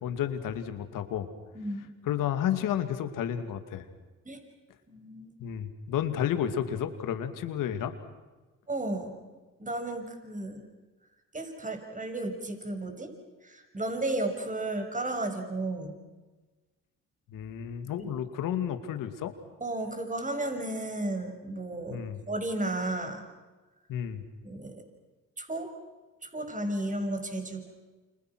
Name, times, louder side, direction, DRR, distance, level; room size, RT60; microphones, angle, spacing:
voice 1, 0.0-1.3 2.0-3.9 5.4-7.9 17.3-19.3 21.9-22.2 23.9-24.2, left 10 dB, 75° left, 8 dB, 2.4 m, -31 dB
voice 2, 1.5-1.9 4.2-4.4 4.9-5.3 8.7-9.2 9.6-10.7 11.3-13.1 13.4-15.9 18.0-18.1 19.6-22.0 22.3-23.2 24.4-24.8 25.4-25.7 26.2-27.7, right 2 dB, 25° right, 5 dB, 6.3 m, -33 dB
29.0 x 27.5 x 6.2 m, 1.2 s
supercardioid pair, 65°, 32 cm